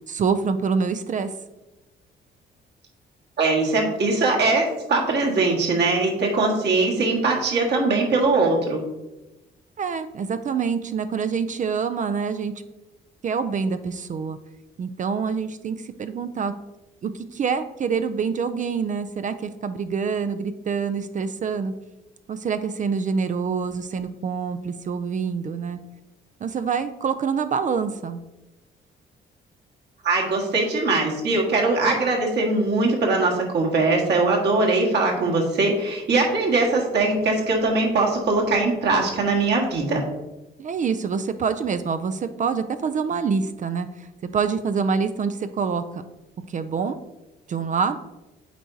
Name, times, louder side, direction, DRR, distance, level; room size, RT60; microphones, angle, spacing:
voice 1, 0.1-1.3 9.8-12.5 13.2-14.4 14.8-16.5 17.0-21.7 22.3-25.8 26.4-28.2 40.6-44.1 44.3-46.0 46.5-47.0 47.5-48.0, right 5 dB, 40° right, 11 dB, 0.4 m, -26 dB
voice 2, 3.4-8.8 30.0-40.0, right 3 dB, 60° right, -1 dB, 1.7 m, -21 dB
8.3 x 4.4 x 2.7 m, 1.0 s
cardioid pair, 90°, 20 cm